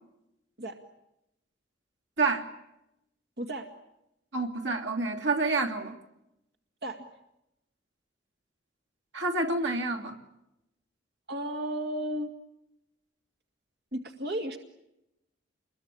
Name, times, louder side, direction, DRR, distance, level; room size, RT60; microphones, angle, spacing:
voice 1, 3.4-3.7 6.8-7.0 11.3-12.4 13.9-14.6, right 1 dB, 55° right, 4 dB, 2.2 m, -33 dB
voice 2, 4.3-6.0 9.1-10.2, right 3 dB, 80° right, 4 dB, 3.0 m, -28 dB
28.0 x 22.0 x 8.6 m, 0.88 s
head